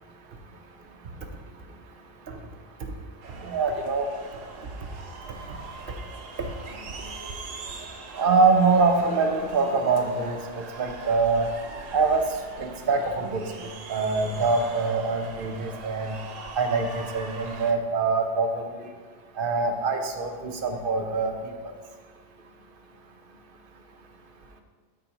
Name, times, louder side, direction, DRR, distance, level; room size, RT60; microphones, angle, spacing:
sound 1, 3.2-17.7, right 3 dB, 85° right, 1.2 m, -41 dB
voice 1, 3.4-4.1 8.2-11.5 11.9-12.2 12.6-13.4 13.9-16.1 16.6-18.7 19.4-21.3, right 4 dB, 50° right, 5 dB, 0.8 m, -24 dB
12.5 x 4.6 x 2.9 m, 1.5 s
omnidirectional pair, 1.3 m